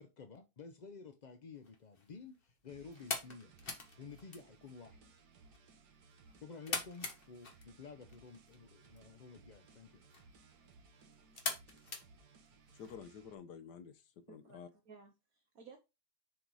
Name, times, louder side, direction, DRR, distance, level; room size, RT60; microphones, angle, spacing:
voice 1, 0.0-3.5 4.0-5.0 6.4-10.0, left 4 dB, 60° left, 0.4 m, -52 dB
sound 1, 1.5-12.9, left 3 dB, 35° left, 1.5 m, -46 dB
sound 2, 2.7-13.3, right 4 dB, 80° right, 1.7 m, -63 dB
voice 2, 12.7-14.7, left 7 dB, 80° left, 1.5 m, -51 dB
voice 3, 14.3-15.8, right 5 dB, 60° right, 1.4 m, -57 dB
7.4 x 4.0 x 4.7 m
omnidirectional pair, 1.8 m